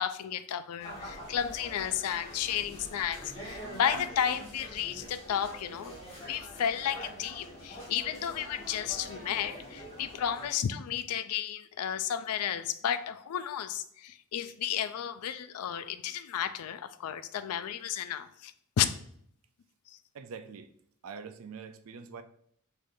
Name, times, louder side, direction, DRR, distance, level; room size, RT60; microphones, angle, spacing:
voice 1, 0.0-6.0 6.3-18.9 19.9-20.0, left 9 dB, 85° left, 0.4 m, -33 dB
sound 1, 0.8-10.5, equal, 30° left, 1.6 m, -45 dB
voice 2, 20.1-20.7 21.0-22.2, right 5 dB, 70° right, 0.4 m, -44 dB
4.9 x 4.1 x 2.6 m
head